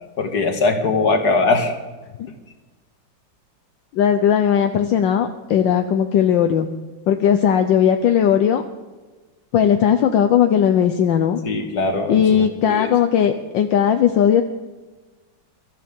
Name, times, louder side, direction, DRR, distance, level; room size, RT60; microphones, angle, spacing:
voice 1, 0.2-1.7 11.4-12.9, left 3 dB, 55° left, 4 dB, 2.2 m, -21 dB
voice 2, 3.9-6.7 7.1-8.6 9.5-11.4 12.1-14.4, left 8 dB, 75° left, 6 dB, 1.5 m, -17 dB
23.5 x 14.0 x 3.7 m, 1.2 s
omnidirectional pair, 2.1 m